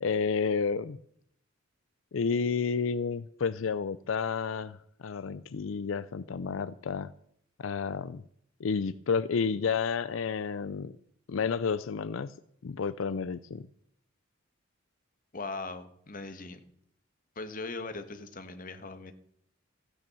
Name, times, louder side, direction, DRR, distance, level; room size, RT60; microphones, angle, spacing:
voice 1, 0.0-1.0 2.1-7.1 7.6-8.2 8.6-10.9 11.3-12.3 12.6-13.7, left 5 dB, 85° left, 15 dB, 0.5 m, -31 dB
voice 2, 15.3-16.6 17.3-19.1, left 3 dB, 45° left, 9 dB, 1.4 m, -39 dB
15.0 x 9.1 x 7.0 m, 0.69 s
head